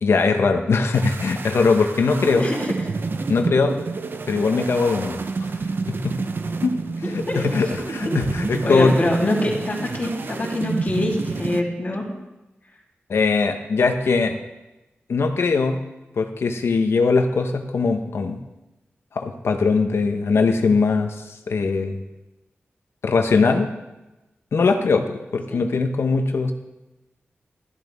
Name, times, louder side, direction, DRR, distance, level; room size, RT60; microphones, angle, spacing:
voice 1, 0.0-2.5 3.3-3.8 4.3-5.5 5.9-6.2 6.6-6.8 7.1-8.9 13.1-14.4 15.1-15.8 16.2-18.4 19.1-21.1 21.5-22.0 23.0-23.7 24.5-26.5, left 4 dB, 90° left, 6 dB, 1.0 m, -20 dB
sound 1, 0.9-11.6, right 4 dB, 55° right, 0.7 m, -29 dB
voice 2, 2.1-2.7 6.8-7.8 8.0-8.2 8.6-12.1 25.5-25.7, left 1 dB, 35° left, -4 dB, 3.2 m, -25 dB
12.5 x 12.5 x 3.5 m, 1.0 s
wide cardioid pair, 90°, 4 cm